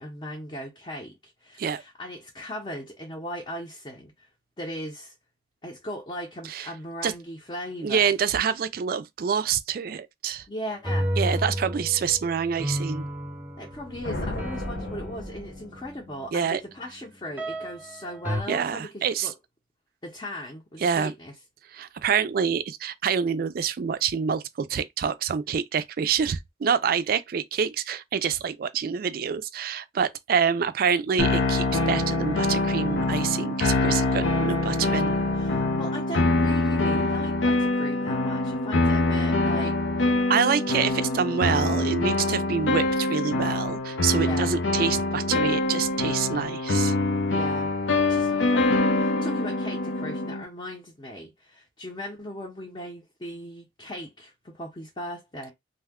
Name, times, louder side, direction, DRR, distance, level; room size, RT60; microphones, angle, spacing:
voice 1, 0.0-4.3 4.6-5.1 5.6-8.1 10.5-11.1 13.6-19.3 20.0-21.3 33.8-39.8 44.2-44.5 47.3-55.5, equal, 25° left, 0.6 m, -38 dB
voice 2, 7.8-10.5 11.2-13.0 16.3-16.6 18.5-19.3 20.8-21.1 21.7-35.2 40.3-46.9, right 7 dB, 55° right, 0.3 m, -26 dB
sound 1, 10.7-16.3 17.4-17.9 18.3-18.4, equal, 10° right, 0.6 m, -32 dB
sound 2, 13.7-16.1, left 1 dB, 65° left, 0.9 m, -35 dB
sound 3, 31.2-50.4, left 2 dB, 85° left, 0.6 m, -24 dB
2.6 x 2.2 x 3.5 m
head